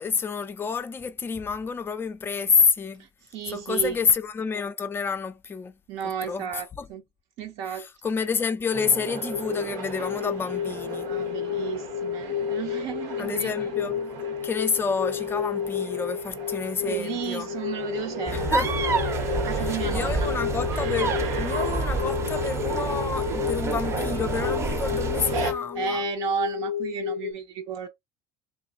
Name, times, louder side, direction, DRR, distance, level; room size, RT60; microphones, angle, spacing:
voice 1, 0.0-3.1 3.5-5.8 6.2-6.9 7.8-11.1 13.2-14.0 14.4-17.5 18.3-18.7 19.5-26.0, left 5 dB, 20° left, 0.4 m, -28 dB
voice 2, 3.0-4.0 5.9-7.0 7.4-7.9 11.0-13.5 16.8-18.6 19.3-20.3 23.3-23.5 25.7-27.9, right 8 dB, 60° right, 0.6 m, -33 dB
sound 1, 8.7-25.5, right 5 dB, 85° right, 1.2 m, -36 dB
sound 2, 9.3-27.3, left 9 dB, 90° left, 0.4 m, -31 dB
sound 3, 18.3-25.5, right 2 dB, 25° right, 0.6 m, -29 dB
2.9 x 2.3 x 3.7 m
cardioid pair, 140°, 12 cm